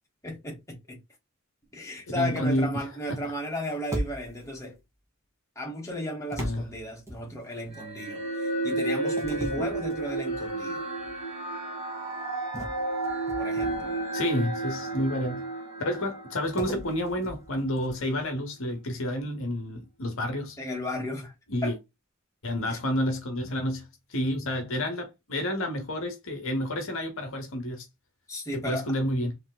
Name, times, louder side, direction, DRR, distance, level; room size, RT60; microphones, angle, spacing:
voice 1, 0.2-1.0 1.7-4.8 5.5-10.8 13.4-13.9 20.6-21.3 21.6-21.8 22.7-22.8 28.3-28.9, equal, 15° left, 1.2 m, -34 dB
voice 2, 2.1-2.7 3.1-3.3 6.4-6.6 14.1-15.5 15.8-20.6 21.5-21.7 22.4-27.8 28.5-29.4, equal, 65° left, 0.9 m, -29 dB
sound 1, 3.9-4.6 6.3-7.7 9.2-10.5 11.0-11.2 12.5-14.0 16.6-18.2, equal, 15° right, 1.1 m, -37 dB
sound 2, 7.7-17.2, right 2 dB, 35° right, 1.9 m, -32 dB
3.3 x 2.8 x 2.2 m
head